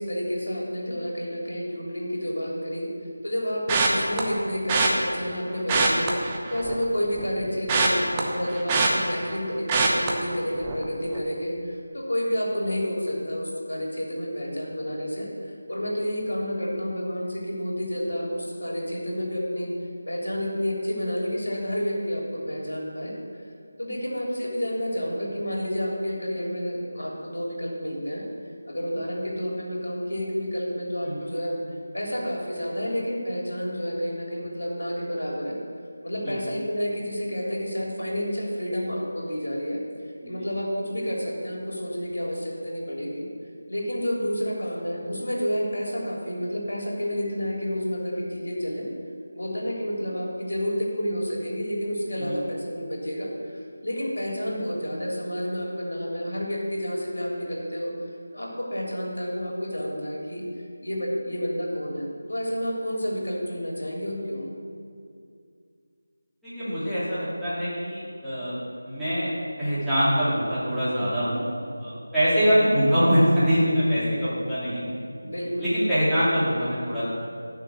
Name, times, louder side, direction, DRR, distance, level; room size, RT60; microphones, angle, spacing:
voice 1, 0.0-2.9 3.2-6.2 6.5-19.7 20.1-23.2 23.8-28.2 28.7-31.6 31.9-35.6 36.0-39.8 40.3-43.2 43.7-48.9 49.3-57.9 58.3-60.4 60.8-64.5 75.2-75.7, equal, 80° left, -2 dB, 3.4 m, -30 dB
sound 1, 3.7-4.2 4.7-4.9 5.6-6.8 7.1-9.4 9.7-10.1 10.6-10.8 11.1-11.2, right 4 dB, 15° right, 0.9 m, -24 dB
voice 2, 66.4-68.6 68.8-69.3 69.6-71.5 71.8-75.0 75.6-77.0, equal, ahead, -19 dB, 3.5 m, -24 dB
12.5 x 6.7 x 6.4 m, 2.3 s
figure-of-eight pair, 165°, 0 cm